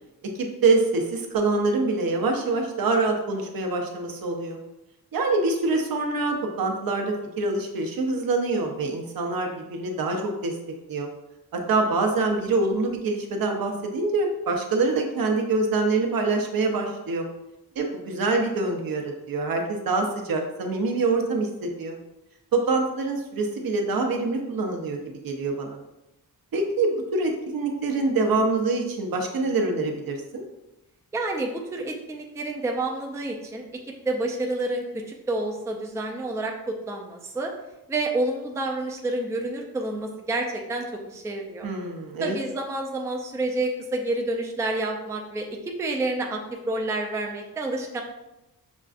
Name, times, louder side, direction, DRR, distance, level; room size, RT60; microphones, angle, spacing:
voice 1, 0.3-4.6 5.1-10.5 10.9-11.1 11.5-17.3 17.8-22.0 22.5-25.0 25.2-25.8 26.5-30.4 41.6-42.4, right 3 dB, 65° right, 3 dB, 0.7 m, -25 dB
voice 2, 31.1-33.6 34.1-37.5 37.9-41.7 42.2-46.4 46.7-48.0, right 2 dB, 10° right, 1 dB, 0.4 m, -29 dB
6.0 x 2.4 x 2.4 m, 0.95 s
wide cardioid pair, 135°, 37 cm